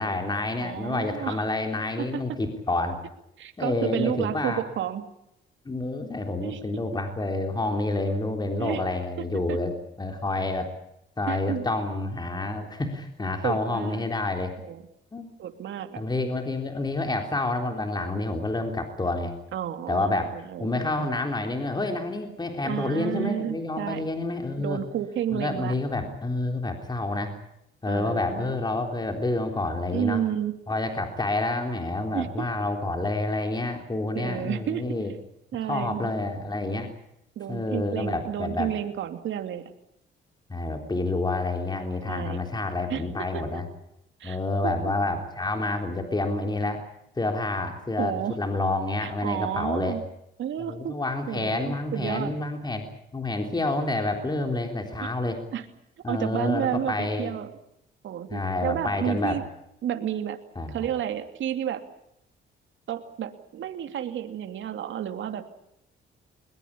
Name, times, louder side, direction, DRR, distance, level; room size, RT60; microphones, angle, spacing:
voice 1, 0.0-3.0 3.6-4.6 5.7-10.7 11.2-14.6 15.1-15.3 16.0-19.3 19.9-20.3 20.6-24.8 25.3-27.3 27.8-30.2 30.7-35.1 35.7-36.9 37.5-38.7 40.5-43.7 44.2-46.8 47.2-50.0 50.7-52.9 53.1-55.4 56.0-57.3 58.3-59.4 60.6-60.9, left 2 dB, 20° left, 4 dB, 3.7 m, -28 dB
voice 2, 0.6-1.4 2.1-2.2 3.4-5.0 6.4-6.6 8.6-8.8 9.2-9.6 11.3-11.6 13.4-14.1 14.6-14.8 15.4-16.0 19.5-21.1 22.6-24.0 24.6-25.7 27.9-28.5 29.9-30.5 32.1-32.5 34.1-34.8 35.5-36.1 37.4-39.7 42.1-42.4 42.9-43.0 43.3-43.4 44.2-44.4 44.6-44.7 48.0-48.4 49.0-50.0 50.4-50.9 51.3-52.3 55.0-55.1 55.5-55.6 56.1-57.5 58.0-59.4 59.8-60.4 60.7-61.8 62.9-65.5, right 10 dB, 70° right, 7 dB, 2.7 m, -31 dB
21.5 x 21.5 x 8.5 m, 0.79 s
cardioid pair, 90°, 20 cm